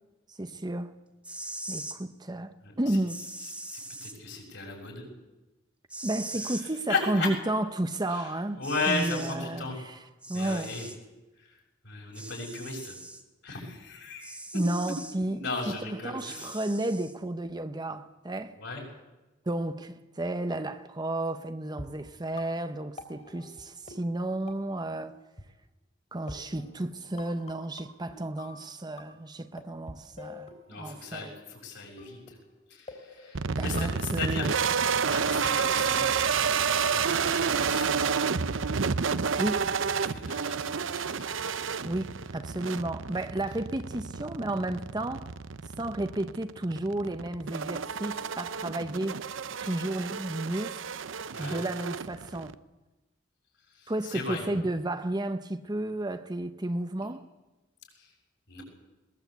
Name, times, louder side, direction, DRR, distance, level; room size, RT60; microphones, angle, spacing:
voice 1, 0.3-0.9 1.7-3.2 6.0-8.6 8.9-10.0 10.3-10.8 14.5-18.6 19.5-25.2 26.1-31.3 33.5-34.5 39.4-39.7 41.8-45.3 45.7-49.2 49.6-50.8 51.4-52.5 53.9-57.2, right 1 dB, 20° right, 0.9 m, -32 dB
sound 1, 1.1-2.0 3.1-4.1 5.9-6.6 8.1-8.2 8.6-9.4 10.2-11.0 12.1-13.2 14.2-15.2 16.2-17.1, right 2 dB, 5° right, 1.7 m, -41 dB
voice 2, 2.6-3.0 3.4-5.1 6.9-7.3 8.1-9.8 10.3-10.9 11.4-11.6 11.8-12.9 13.4-14.6 15.3-16.6 18.6-18.8 30.7-32.4 32.7-34.5 35.0-38.2 39.9-41.4 51.3-51.6 53.7-54.4 58.0-58.1 58.5-58.6, left 3 dB, 65° left, 7.0 m, -36 dB
sound 2, 21.7-25.1 25.4-25.5 26.3-29.3 29.6-31.2 32.0-36.2, left 2 dB, 35° left, 3.5 m, -48 dB
sound 3, 33.3-52.5, right 6 dB, 90° right, 0.7 m, -30 dB
21.5 x 20.0 x 8.1 m
head